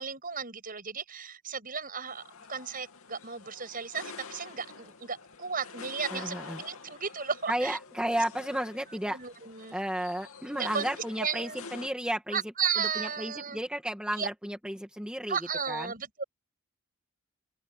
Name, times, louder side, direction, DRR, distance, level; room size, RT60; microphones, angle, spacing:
voice 1, 0.0-2.2 2.5-7.8 9.1-9.8 10.5-10.9 11.2-11.6 12.3-13.6 14.1-14.3 15.3-16.2, right 6 dB, 40° right, 7.0 m, -34 dB
sound 1, 2.1-11.9, left 4 dB, 70° left, 2.8 m, -47 dB
voice 2, 6.1-6.6 7.5-9.2 9.7-12.4 13.0-15.4 15.7-15.9, right 1 dB, 5° right, 1.9 m, -33 dB
open air
head